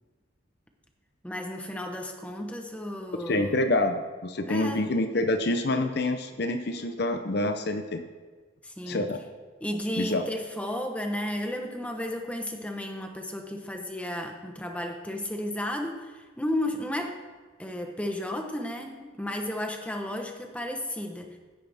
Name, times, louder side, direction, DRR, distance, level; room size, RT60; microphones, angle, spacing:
voice 1, 1.2-3.6 4.5-4.8 8.6-9.1 9.6-17.2 17.6-21.4, left 1 dB, 5° left, 3 dB, 1.0 m, -33 dB
voice 2, 3.3-8.0 8.9-9.2 10.0-10.2, left 2 dB, 55° left, 7 dB, 0.7 m, -27 dB
15.0 x 10.5 x 3.5 m, 1.4 s
head